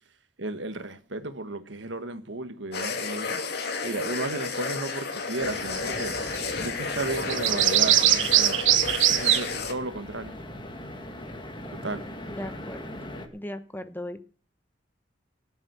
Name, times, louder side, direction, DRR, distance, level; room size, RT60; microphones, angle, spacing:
voice 1, 0.4-3.4 3.8-6.2 6.6-8.6 9.0-10.4 11.7-12.1, right 2 dB, 70° right, 1.5 m, -34 dB
sound 1, 2.7-9.7, left 4 dB, 60° left, 2.2 m, -32 dB
sound 2, 5.4-13.3, left 1 dB, 25° left, 1.9 m, -40 dB
sound 3, 5.8-6.1 6.3-6.4 7.3-9.5, right 13 dB, 85° right, 0.9 m, -21 dB
voice 2, 12.3-12.8 13.3-14.2, left 1 dB, 10° left, 0.8 m, -37 dB
17.5 x 7.3 x 6.9 m
head